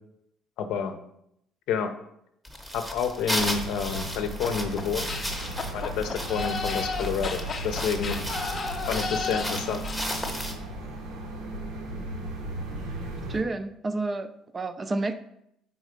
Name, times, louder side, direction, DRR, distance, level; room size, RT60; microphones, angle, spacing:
voice 1, 0.6-0.9 1.7-1.9 2.7-5.1 5.7-8.2 8.9-9.8, left 6 dB, 70° left, 8 dB, 0.6 m, -29 dB
sound 1, 2.4-10.5, equal, 5° right, 0.8 m, -35 dB
sound 2, 3.3-13.4, right 1 dB, 90° right, 1.1 m, -36 dB
sound 3, 4.4-10.3, left 4 dB, 30° left, 0.5 m, -34 dB
voice 2, 13.3-15.1, right 2 dB, 20° right, 9 dB, 0.4 m, -30 dB
4.5 x 4.1 x 5.1 m, 0.76 s
cardioid pair, 145°, 0 cm